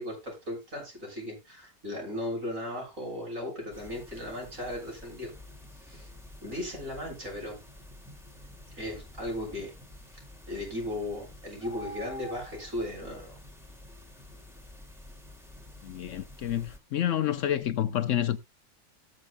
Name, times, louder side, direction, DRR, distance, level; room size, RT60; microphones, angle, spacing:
voice 1, 0.0-5.3 5.8-6.1 6.4-7.6 8.8-9.7 10.5-13.4, left 1 dB, 65° right, 7.4 m, -36 dB
sound 1, 3.7-16.8, left 1 dB, ahead, 2.4 m, -48 dB
voice 2, 15.8-18.4, left 11 dB, 65° left, 0.9 m, -29 dB
18.0 x 7.7 x 2.3 m
omnidirectional pair, 1.5 m